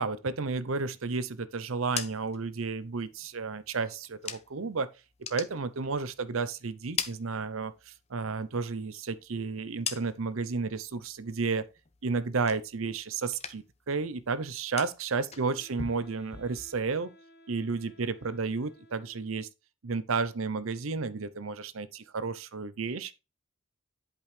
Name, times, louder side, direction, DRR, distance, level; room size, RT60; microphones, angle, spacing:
voice 1, 0.0-4.9 5.3-11.7 12.0-17.1 17.5-19.5 19.8-23.1, right 4 dB, 75° right, 0.7 m, -32 dB
sound 1, 1.6-4.7 5.1-6.4 6.7-8.0 8.3-10.5 10.9-11.3 11.7-13.0 13.2-13.9 14.1-17.0, left 7 dB, 30° left, 0.8 m, -42 dB
Wind instrument woodwind instrument, 15.4-19.5, equal, 55° left, 1.4 m, -57 dB
11.0 x 5.3 x 3.3 m
head